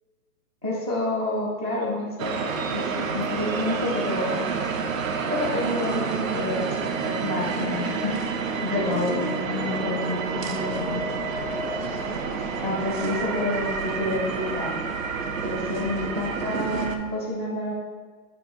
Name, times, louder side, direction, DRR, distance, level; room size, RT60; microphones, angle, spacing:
voice 1, 0.6-4.5 5.3-7.9 8.6-11.1 12.6-14.7 15.4-17.8, left 1 dB, 20° right, -5 dB, 0.4 m, -29 dB
sound 1, 2.2-17.0, right 5 dB, 60° right, 0.8 m, -29 dB
7.7 x 3.1 x 5.2 m, 1.5 s
hypercardioid pair, 155°, 46 cm